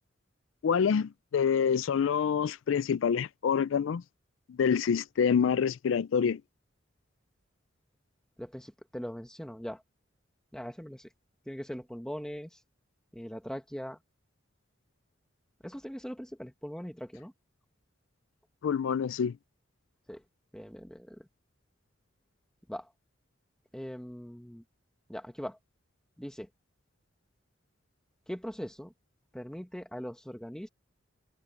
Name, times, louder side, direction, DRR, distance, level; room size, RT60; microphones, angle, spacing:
voice 1, 0.6-4.0 4.5-6.4 18.6-19.3, left 7 dB, 75° left, 0.4 m, -27 dB
voice 2, 8.4-9.8 10.5-11.1 11.5-12.6 13.1-14.0 15.6-17.3 20.1-20.2 20.5-21.2 22.7-22.9 23.7-24.6 25.1-25.6 26.2-26.5 28.3-28.9 29.3-30.7, equal, 5° left, 1.6 m, -40 dB
head